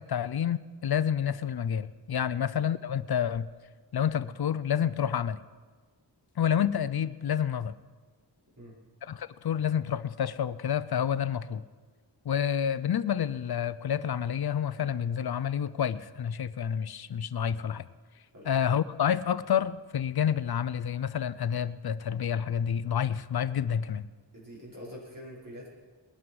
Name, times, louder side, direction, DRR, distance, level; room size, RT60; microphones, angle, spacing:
voice 1, 0.0-3.5 3.9-5.4 6.4-7.7 9.1-11.6 12.3-17.9 18.5-24.1, left 8 dB, 60° left, 16 dB, 0.6 m, -29 dB
voice 2, 24.3-25.7, equal, 45° right, -5 dB, 5.5 m, -45 dB
20.5 x 11.5 x 4.8 m, 1.4 s
wide cardioid pair, 90°, 44 cm